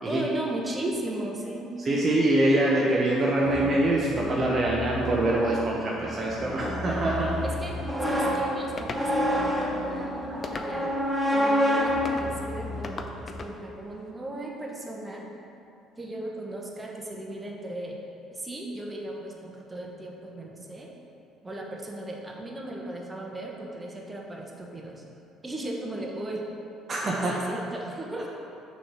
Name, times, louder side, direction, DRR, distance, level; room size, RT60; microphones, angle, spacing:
voice 1, 0.1-2.1 7.4-10.9 11.3-15.3 16.0-18.0 18.3-20.9 21.4-25.0 25.4-26.4 27.0-28.3, right 1 dB, 20° right, -1 dB, 1.1 m, -36 dB
voice 2, 1.8-7.3 26.9-27.4, right 1 dB, 40° right, -3 dB, 0.8 m, -24 dB
sound 1, 3.5-13.4, equal, 5° left, 1.0 m, -29 dB
sound 2, 8.8-9.1 10.4-11.0 12.1-12.3 12.8-13.6, left 3 dB, 40° left, 0.5 m, -38 dB
6.4 x 3.2 x 5.7 m, 2.7 s
hypercardioid pair, 55°, 0 cm